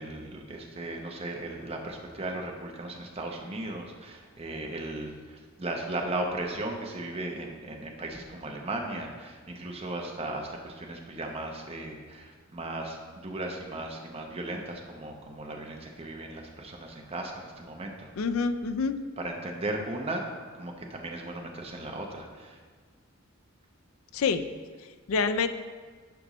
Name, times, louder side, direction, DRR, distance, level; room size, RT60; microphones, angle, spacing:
voice 1, 0.0-18.1 19.2-20.2 20.5-22.6, right 2 dB, 30° right, 1 dB, 0.7 m, -36 dB
voice 2, 18.2-18.9 24.1-24.5 25.1-25.5, left 5 dB, 85° left, 10 dB, 0.4 m, -26 dB
10.5 x 5.2 x 3.0 m, 1.5 s
head